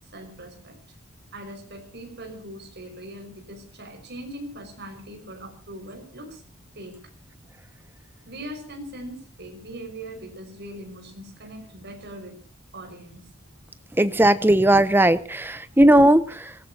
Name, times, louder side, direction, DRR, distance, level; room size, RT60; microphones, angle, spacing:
voice 1, 0.1-0.8 1.3-6.4 6.8-7.1 8.3-12.4 12.7-13.3, right 1 dB, 50° right, 5 dB, 5.8 m, -40 dB
voice 2, 14.0-16.4, right 1 dB, 10° right, 13 dB, 0.8 m, -17 dB
27.0 x 18.0 x 2.9 m, 0.42 s
head